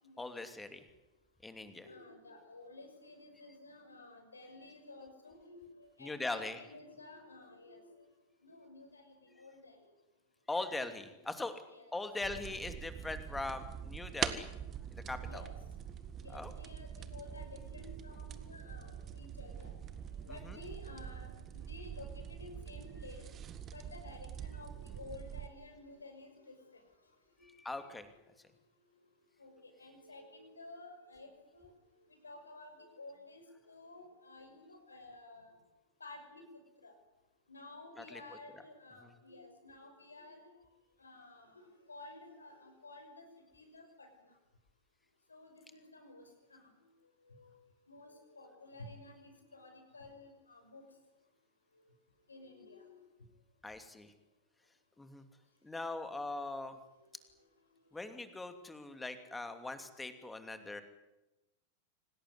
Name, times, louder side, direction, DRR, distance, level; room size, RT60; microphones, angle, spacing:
voice 1, 0.2-0.8 1.4-1.9 6.0-6.6 10.5-11.5 11.9-14.5 14.9-15.4 16.3-16.5 20.3-20.6 27.4-28.1 38.0-38.4 39.0-39.1 53.6-54.1 55.0-55.2 55.6-56.8 57.9-60.8, left 2 dB, 10° left, 9 dB, 2.7 m, -41 dB
voice 2, 1.8-8.0 8.4-9.8 11.7-11.8 12.9-13.0 15.0-15.5 16.2-19.7 20.2-23.3 23.7-26.8 27.4-27.8 28.1-28.2 29.4-31.7 32.1-35.6 36.0-36.4 36.8-36.9 37.5-40.5 41.0-43.2 43.5-44.1 45.3-46.2 46.5-46.7 47.3-47.6 47.9-50.8 52.3-53.1 57.0-57.1, left 2 dB, 75° left, 6 dB, 6.1 m, -53 dB
sound 1, 12.2-25.5, right 9 dB, 25° right, 1.8 m, -44 dB
26.0 x 18.5 x 9.7 m, 0.99 s
figure-of-eight pair, 90°, 0 cm